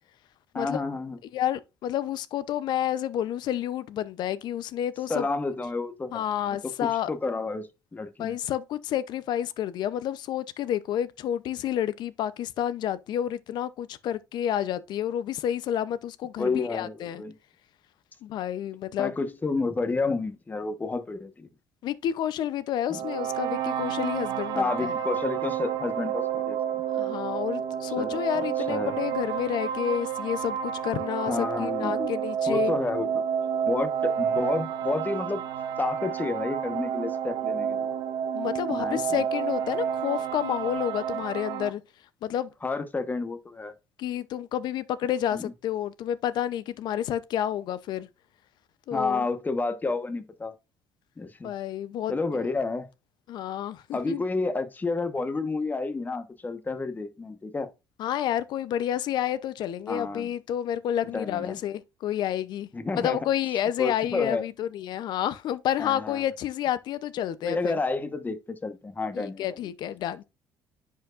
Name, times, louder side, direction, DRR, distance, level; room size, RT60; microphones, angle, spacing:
voice 1, 0.5-1.2 5.1-8.4 16.4-17.3 19.0-21.5 22.9-23.0 24.5-26.6 28.0-28.9 31.2-32.1 32.5-33.2 33.6-35.4 35.8-37.9 38.7-39.2 42.6-43.7 45.3-45.5 48.9-50.5 51.2-51.5 52.1-52.9 53.9-57.7 59.9-60.3 61.1-61.6 62.7-63.3 63.8-64.5 65.8-66.2 67.4-69.6, left 3 dB, 20° left, 1.1 m, -30 dB
voice 2, 1.3-5.3 6.1-7.1 8.2-17.2 18.2-19.1 21.8-25.0 26.9-32.8 38.3-41.8 42.2-42.5 44.0-48.1 48.9-49.2 51.4-52.4 53.3-54.2 58.0-62.7 63.0-67.7 69.1-70.2, left 10 dB, 70° left, 0.6 m, -30 dB
sound 1, 22.9-41.7, right 8 dB, 75° right, 0.8 m, -30 dB
10.0 x 4.6 x 2.5 m
cardioid pair, 90°, 8 cm